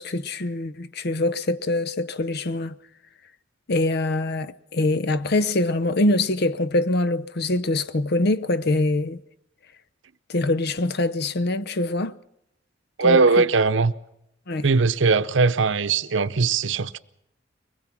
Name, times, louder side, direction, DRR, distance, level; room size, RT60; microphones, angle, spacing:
voice 1, 0.0-2.7 3.7-9.2 10.3-12.1 13.0-13.2 14.5-14.7, left 2 dB, 55° left, 0.7 m, -24 dB
voice 2, 13.0-13.9 14.6-17.0, right 4 dB, 75° right, 0.8 m, -20 dB
23.5 x 20.0 x 6.0 m
head